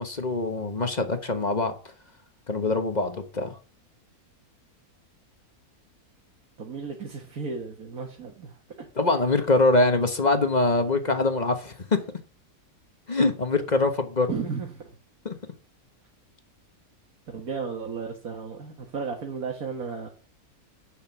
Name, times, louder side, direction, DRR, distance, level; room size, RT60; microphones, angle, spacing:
voice 1, 0.0-1.7 2.5-3.6 9.0-12.0 13.1-14.3 15.2-15.3, left 2 dB, 30° left, 1.2 m, -23 dB
voice 2, 6.6-8.9 14.3-15.0 17.3-20.1, right 5 dB, 70° right, 2.1 m, -34 dB
9.4 x 6.6 x 7.3 m
omnidirectional pair, 1.6 m